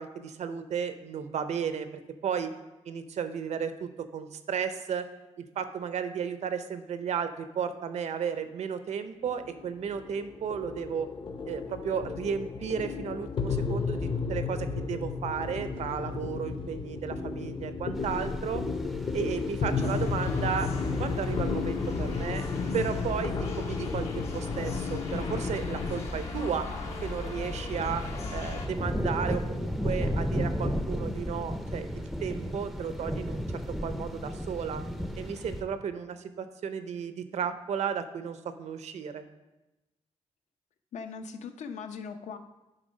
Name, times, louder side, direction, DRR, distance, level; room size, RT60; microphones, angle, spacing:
voice 1, 0.0-2.5 2.9-5.1 5.4-11.1 11.5-18.6 19.1-20.7 21.0-22.4 22.7-26.7 27.0-34.8 35.2-39.3, right 7 dB, 75° right, 10 dB, 0.6 m, -34 dB
sound 1, 9.2-26.0, left 5 dB, 45° left, 0.6 m, -33 dB
sound 2, 17.9-35.6, equal, ahead, 0.4 m, -36 dB
sound 3, 19.8-28.7, left 3 dB, 65° left, 1.3 m, -37 dB
voice 2, 40.9-42.4, left 5 dB, 85° left, 7 dB, 0.7 m, -39 dB
10.0 x 3.9 x 5.2 m, 1.0 s
wide cardioid pair, 175°, 12 cm